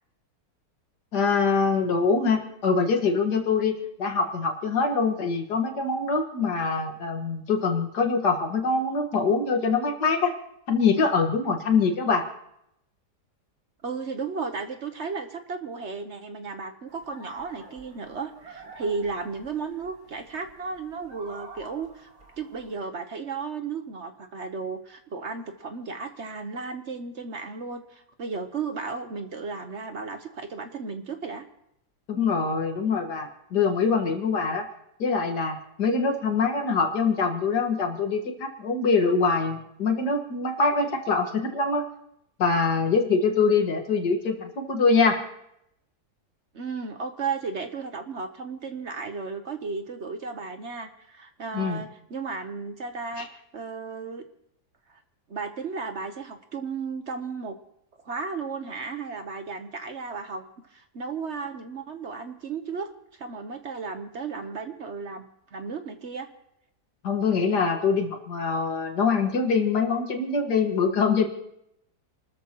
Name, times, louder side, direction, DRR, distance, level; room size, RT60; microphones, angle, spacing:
voice 1, 1.1-10.3 10.7-12.2 32.1-34.7 35.0-41.8 42.4-45.2 51.5-51.8 53.2-53.3 67.0-71.3, left 4 dB, 80° left, 4 dB, 2.2 m, -24 dB
voice 2, 13.8-22.1 22.4-31.5 46.5-54.2 54.9-55.0 55.3-57.6 58.0-62.9 63.2-66.3, right 4 dB, 50° right, 7 dB, 1.1 m, -34 dB
sound 1, 16.9-22.8, right 2 dB, 65° right, 3.8 m, -48 dB
28.5 x 13.5 x 3.0 m, 0.77 s
omnidirectional pair, 1.7 m